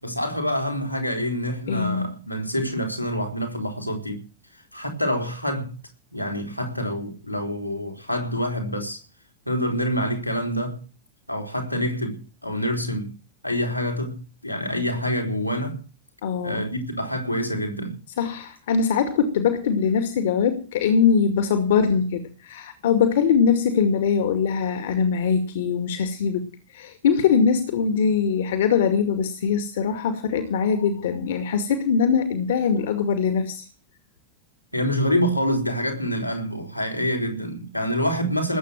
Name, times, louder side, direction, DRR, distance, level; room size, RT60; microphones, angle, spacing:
voice 1, 0.0-4.2 4.7-5.8 6.1-9.0 9.5-10.8 11.3-13.1 13.4-15.8 16.4-18.0 34.7-38.6, equal, 90° left, 4.3 m, -26 dB
voice 2, 1.7-2.1 16.2-16.6 18.2-26.4 26.7-33.7, left 6 dB, 60° left, 2.2 m, -22 dB
19.5 x 8.5 x 7.6 m
figure-of-eight pair, 90°, 0 cm